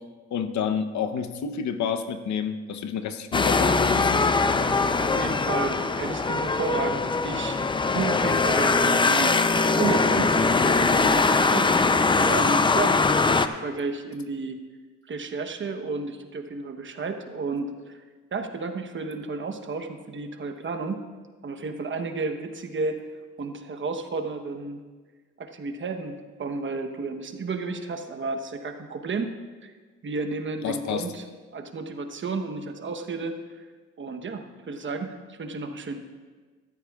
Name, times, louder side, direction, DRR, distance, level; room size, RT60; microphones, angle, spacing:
voice 1, 0.3-4.4 30.6-31.0, left 7 dB, 70° left, 9 dB, 0.9 m, -29 dB
sound 1, 3.3-13.5, left 4 dB, 15° left, 0.5 m, -22 dB
voice 2, 5.0-7.6 7.9-14.6 15.1-18.0 18.3-21.0 21.4-23.0 23.4-24.8 25.4-26.1 26.4-29.3 29.6-29.7 30.0-31.3 31.5-33.7 34.0-36.0, right 3 dB, 40° right, 6 dB, 1.0 m, -32 dB
14.5 x 13.0 x 2.4 m, 1.4 s
cardioid pair, 90°, 30 cm